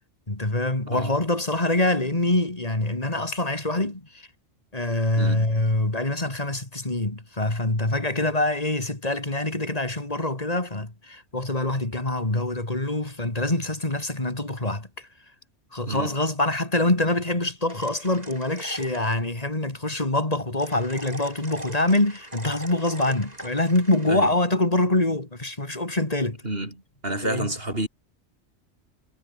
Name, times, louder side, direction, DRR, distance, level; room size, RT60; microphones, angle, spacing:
voice 1, 0.3-4.3 4.7-15.1 15.7-26.4 27.2-27.5, left 2 dB, 30° left, 3.5 m, -25 dB
voice 2, 5.2-5.6 15.9-16.2 24.1-24.3 26.4-26.7 27.0-27.9, right 1 dB, 55° right, 6.1 m, -29 dB
sound 1, 17.7-19.2 20.6-24.1, right 1 dB, 35° right, 5.9 m, -41 dB
omnidirectional pair, 1.2 m